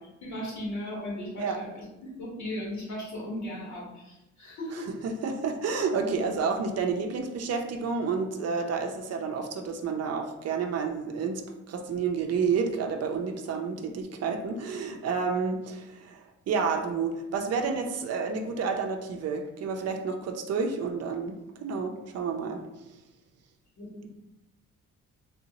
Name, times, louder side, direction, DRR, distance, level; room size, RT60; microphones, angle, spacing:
voice 1, 0.2-4.9 23.8-24.1, left 1 dB, 70° left, -4 dB, 1.5 m, -37 dB
voice 2, 4.7-11.4 11.7-22.6, right 5 dB, 55° right, 4 dB, 0.5 m, -30 dB
3.4 x 2.7 x 2.9 m, 0.98 s
cardioid pair, 90°, 30 cm